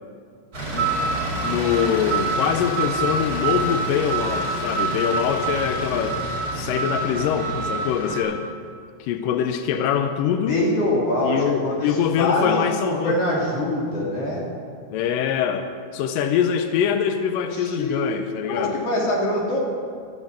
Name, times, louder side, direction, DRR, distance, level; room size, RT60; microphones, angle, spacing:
sound 1, 0.5-8.2, right 3 dB, 25° right, 4.1 m, -26 dB
voice 1, 1.4-8.4 9.0-10.5 11.2-13.2 14.9-18.8, left 8 dB, 85° left, 7 dB, 2.0 m, -24 dB
voice 2, 10.5-14.5 17.5-18.1 18.5-19.6, left 1 dB, 40° left, -4 dB, 3.6 m, -24 dB
13.0 x 9.6 x 8.9 m, 2.3 s
omnidirectional pair, 4.6 m